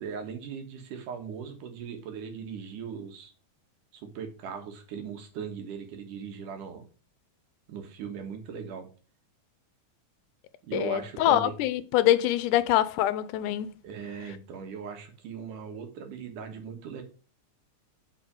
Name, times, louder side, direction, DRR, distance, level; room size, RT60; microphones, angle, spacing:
voice 1, 0.0-3.3 3.9-6.9 7.7-8.9 10.6-11.6 13.8-17.0, right 6 dB, 85° right, 3.2 m, -39 dB
voice 2, 10.7-13.7, left 13 dB, 85° left, 2.2 m, -24 dB
7.4 x 6.3 x 5.3 m
omnidirectional pair, 3.5 m